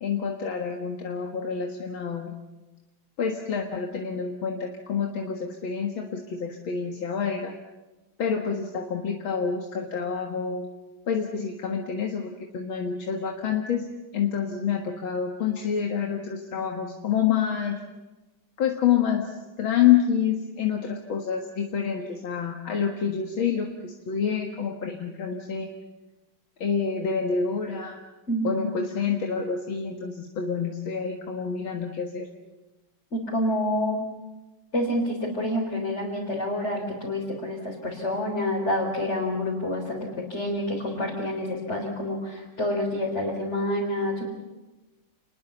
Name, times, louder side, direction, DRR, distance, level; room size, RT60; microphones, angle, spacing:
voice 1, 0.0-2.4 3.2-7.5 8.2-10.6 11.1-17.8 18.6-25.7 26.6-28.0 28.4-32.3, left 7 dB, 85° left, 2 dB, 2.5 m, -27 dB
voice 2, 33.1-34.0 34.7-44.3, left 1 dB, 35° left, -3 dB, 4.4 m, -28 dB
29.0 x 21.0 x 7.1 m, 1.1 s
omnidirectional pair, 2.1 m